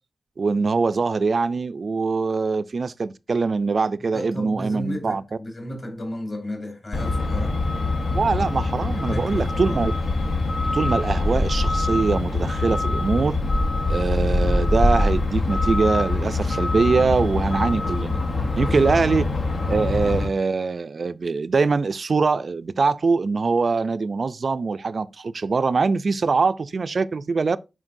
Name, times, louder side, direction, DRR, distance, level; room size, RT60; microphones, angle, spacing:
voice 1, 0.4-5.2 8.1-9.9 10.7-13.4 13.9-18.2 18.6-19.2 19.7-27.6, right 4 dB, 60° right, 0.4 m, -23 dB
voice 2, 4.0-7.6 8.9-9.8 18.5-18.9, left 1 dB, 40° left, 2.8 m, -34 dB
Truck, 6.9-20.3, left 2 dB, 70° left, 0.9 m, -23 dB
9.8 x 4.4 x 2.6 m
wide cardioid pair, 120°, 0 cm